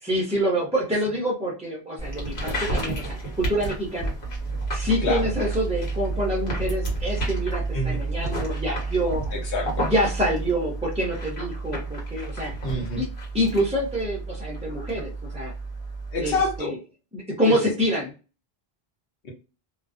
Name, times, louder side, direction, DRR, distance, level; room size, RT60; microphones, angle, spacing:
voice 1, 0.0-4.1 4.7-9.2 9.8-12.5 13.0-13.1 13.3-15.5 16.2-16.8 17.1-18.1, equal, 10° right, -3 dB, 0.3 m, -26 dB
sound 1, 2.0-16.6, right 2 dB, 80° left, 1.3 m, -30 dB
voice 2, 9.3-9.9 12.6-13.0 16.1-16.7 17.5-17.6 19.2-19.3, left 2 dB, 65° left, 0 dB, 1.0 m, -27 dB
2.4 x 2.2 x 2.4 m, 0.32 s
omnidirectional pair, 1.0 m